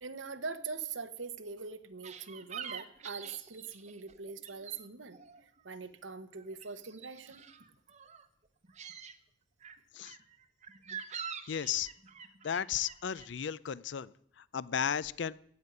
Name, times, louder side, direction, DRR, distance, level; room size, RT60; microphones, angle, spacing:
voice 1, 0.0-5.2 5.6-7.4, right 5 dB, 85° right, 10 dB, 1.0 m, -42 dB
sound 1, 2.0-4.8 5.1-5.9 6.2-8.3 8.6-9.1 9.6-13.3, right 7 dB, 40° right, 0.9 m, -46 dB
voice 2, 11.5-11.9 12.4-14.1 14.4-15.3, left 8 dB, 65° left, 20 dB, 0.5 m, -34 dB
16.0 x 5.4 x 9.7 m, 0.67 s
head